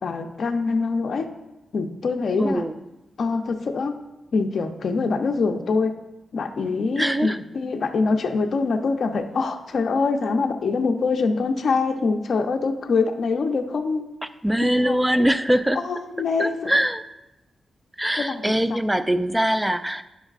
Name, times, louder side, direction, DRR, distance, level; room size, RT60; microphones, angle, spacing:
voice 1, 0.0-1.3 1.7-2.6 3.2-4.0 4.3-6.0 6.3-14.1 14.6-15.2 15.8-16.7 18.2-18.6, left 4 dB, 60° left, 4 dB, 0.6 m, -24 dB
voice 2, 2.4-2.8 7.0-7.4 14.4-15.8 16.4-17.0 18.0-20.0, equal, 10° right, 11 dB, 0.3 m, -22 dB
10.0 x 5.3 x 2.4 m, 0.96 s
wide cardioid pair, 115°, 0 cm